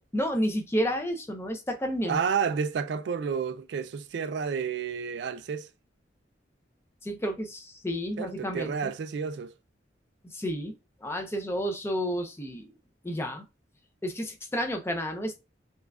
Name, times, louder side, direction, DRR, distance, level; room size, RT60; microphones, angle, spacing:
voice 1, 0.1-2.2 7.0-8.9 10.2-10.7 11.0-12.7 13.0-13.5 14.0-15.4, equal, 15° left, 0.5 m, -31 dB
voice 2, 2.1-5.7 8.2-9.5, right 6 dB, 65° right, 0.3 m, -30 dB
5.4 x 2.4 x 2.3 m
head